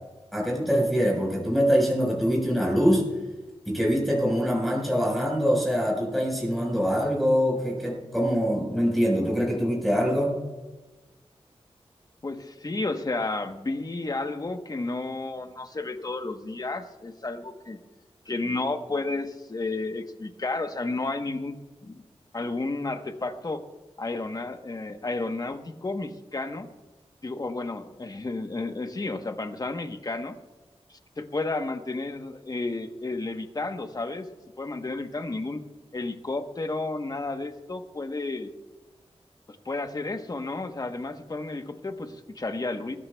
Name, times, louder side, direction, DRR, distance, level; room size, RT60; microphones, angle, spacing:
voice 1, 0.3-3.1 3.6-10.4, equal, ahead, -3 dB, 4.5 m, -24 dB
voice 2, 12.2-17.8 18.3-21.5 21.8-22.0 22.3-23.6 24.0-26.7 27.2-30.4 30.9-34.3 34.6-35.6 35.9-38.5 39.5-43.0, left 2 dB, 35° left, 7 dB, 1.0 m, -32 dB
21.5 x 14.5 x 2.3 m, 1.2 s
wide cardioid pair, 105°, 11 cm